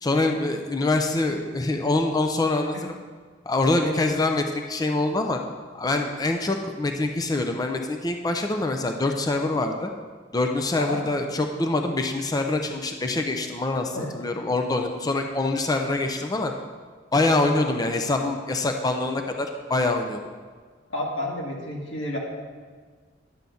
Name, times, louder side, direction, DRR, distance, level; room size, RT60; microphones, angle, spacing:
voice 1, 0.0-2.7 3.5-5.4 5.7-9.9 10.3-16.5 17.1-20.2, left 2 dB, 20° left, 4 dB, 0.5 m, -25 dB
voice 2, 3.8-4.2 10.8-11.0 13.9-14.1 20.9-22.2, left 1 dB, 85° left, -2 dB, 1.9 m, -30 dB
10.5 x 3.9 x 6.9 m, 1.5 s
head